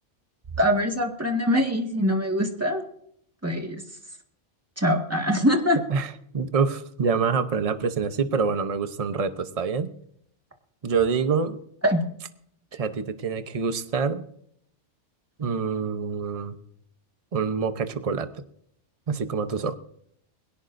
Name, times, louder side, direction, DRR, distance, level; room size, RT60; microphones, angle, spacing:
voice 1, 0.6-2.8 3.4-3.8 4.8-5.8 11.8-12.0, equal, 10° right, 3 dB, 1.7 m, -23 dB
voice 2, 5.9-9.9 10.8-11.6 12.7-14.3 15.4-16.6 17.3-18.4 19.1-19.7, right 5 dB, 35° right, 10 dB, 0.8 m, -26 dB
21.5 x 17.5 x 2.6 m, 0.68 s
omnidirectional pair, 1.2 m